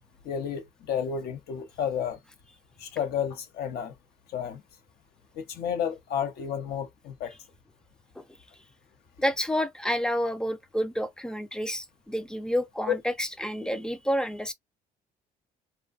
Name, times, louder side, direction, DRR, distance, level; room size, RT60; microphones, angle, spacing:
voice 1, 0.2-2.2 2.8-3.9 4.3-4.6 5.3-7.3 12.9-13.0, left 8 dB, 70° left, 0.7 m, -31 dB
voice 2, 9.2-14.5, equal, 5° left, 0.4 m, -29 dB
2.5 x 2.2 x 2.3 m
cardioid pair, 110°, 17 cm